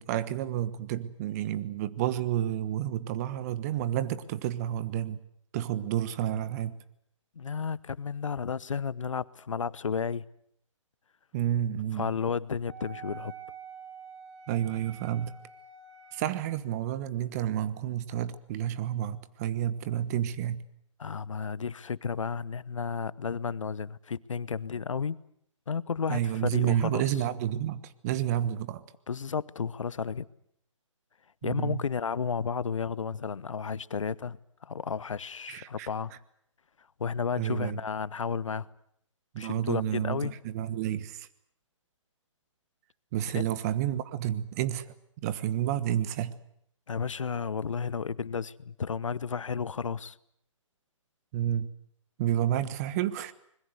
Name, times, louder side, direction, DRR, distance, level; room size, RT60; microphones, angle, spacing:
voice 1, 0.0-5.2 5.5-6.8 11.3-12.1 14.5-15.4 16.1-20.6 26.1-28.8 31.4-31.8 35.5-35.9 37.4-37.8 39.3-41.3 43.1-44.9 45.2-46.3 51.3-51.7 52.2-53.3, right 11 dB, 30° right, 1.3 m, -30 dB
voice 2, 7.4-10.2 11.9-13.3 21.0-25.2 25.7-27.0 29.1-30.3 31.4-34.4 34.6-36.1 37.0-38.7 39.4-40.3 43.3-43.5 46.9-50.2, left 6 dB, 75° left, 1.0 m, -32 dB
Wind instrument woodwind instrument, 12.7-16.6, right 7 dB, 55° right, 7.4 m, -47 dB
25.5 x 21.0 x 8.0 m
hypercardioid pair, 145°, 17 cm